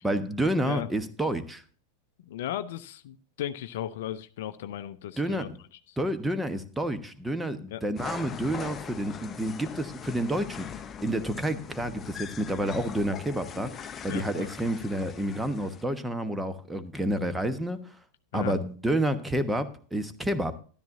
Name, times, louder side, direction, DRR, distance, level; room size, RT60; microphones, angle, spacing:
voice 1, 0.0-1.6 5.2-5.4 6.0-17.8 18.3-20.6, right 1 dB, 5° right, 10 dB, 1.2 m, -29 dB
voice 2, 2.2-5.5 5.9-6.0 7.7-7.8 14.1-14.5 18.3-18.6, left 11 dB, 55° left, 13 dB, 0.7 m, -36 dB
sound 1, 8.0-15.8, left 7 dB, 25° left, 0.8 m, -41 dB
13.0 x 12.0 x 2.7 m, 0.41 s
figure-of-eight pair, 90°, 0 cm